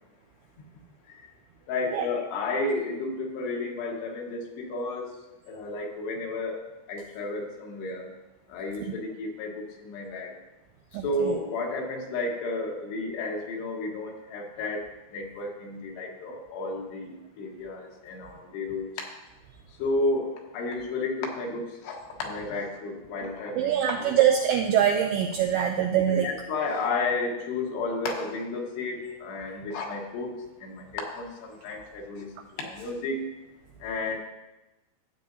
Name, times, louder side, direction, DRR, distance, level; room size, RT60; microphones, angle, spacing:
voice 1, 1.7-5.1 5.4-6.6 6.9-8.1 8.5-10.3 10.9-19.1 19.8-24.2 26.1-30.4 30.6-33.3 33.8-34.2, left 2 dB, 75° left, 0 dB, 3.4 m, -32 dB
voice 2, 10.9-11.4 23.6-26.3, right 9 dB, 90° right, 5 dB, 2.2 m, -24 dB
15.0 x 8.3 x 2.7 m, 1.0 s
omnidirectional pair, 5.1 m